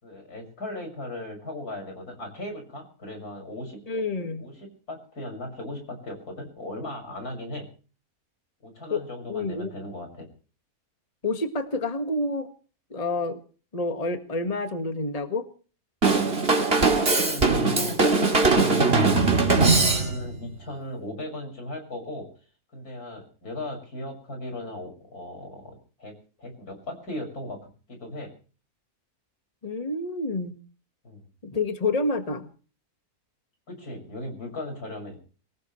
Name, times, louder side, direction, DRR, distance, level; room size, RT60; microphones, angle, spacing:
voice 1, 0.0-3.8 4.4-7.7 8.6-10.3 16.7-22.3 22.7-27.6 27.9-28.3 31.0-31.2 33.7-35.2, left 1 dB, 85° left, 4 dB, 6.8 m, -37 dB
voice 2, 3.9-4.5 8.9-9.0 9.3-9.7 11.2-12.5 12.9-13.4 13.7-15.5 29.6-30.5 31.4-32.5, left 2 dB, 25° left, 8 dB, 1.7 m, -28 dB
Drum kit / Drum, 16.0-20.4, right 3 dB, 40° right, 2.7 m, -20 dB
23.5 x 19.0 x 3.2 m, 0.40 s
omnidirectional pair, 1.6 m